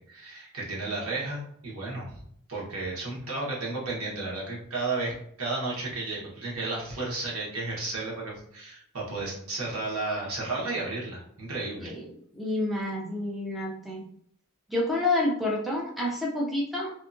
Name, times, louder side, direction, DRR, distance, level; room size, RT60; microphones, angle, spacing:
voice 1, 0.0-2.2 2.5-11.9, right 3 dB, 80° right, -4 dB, 1.1 m, -33 dB
voice 2, 12.3-14.1 14.7-16.9, left 2 dB, ahead, -3 dB, 0.4 m, -28 dB
2.7 x 2.3 x 2.5 m, 0.68 s
head